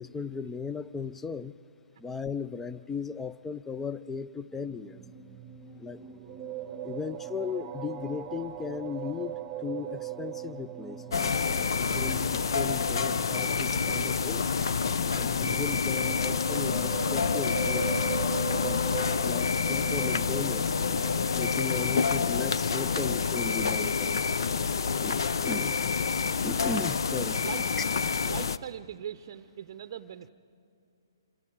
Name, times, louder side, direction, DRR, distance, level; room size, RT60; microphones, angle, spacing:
voice 1, 0.0-1.6 2.0-5.0 5.8-6.0 6.8-11.3 11.9-14.5 15.1-17.9 18.6-18.9 19.2-20.8 21.3-24.2 24.7-25.8 26.4-27.4, left 5 dB, 10° left, 16 dB, 0.4 m, -37 dB
sound 1, 4.5-21.8, right 11 dB, 20° right, 0.9 m, -41 dB
sound 2, 11.1-28.6, left 5 dB, 70° left, 0.6 m, -28 dB
voice 2, 27.3-27.6 28.2-30.3, right 9 dB, 50° right, 11 dB, 0.6 m, -40 dB
26.5 x 25.5 x 4.8 m, 2.6 s
hypercardioid pair, 145°, 2 cm